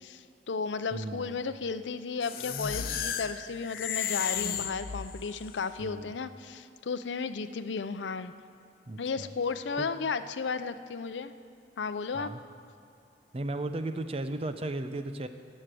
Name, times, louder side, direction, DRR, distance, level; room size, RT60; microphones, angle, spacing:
voice 1, 0.0-8.3 9.0-11.3 11.8-12.3, left 5 dB, 90° left, 12 dB, 0.5 m, -34 dB
voice 2, 0.9-1.4 5.8-6.1 8.9-9.3 9.8-9.9 12.1-12.4 13.3-15.3, right 2 dB, 35° right, 9 dB, 0.6 m, -35 dB
sound 1, 2.2-5.5, left 8 dB, 55° left, 0.7 m, -34 dB
17.0 x 6.5 x 7.6 m, 2.6 s
head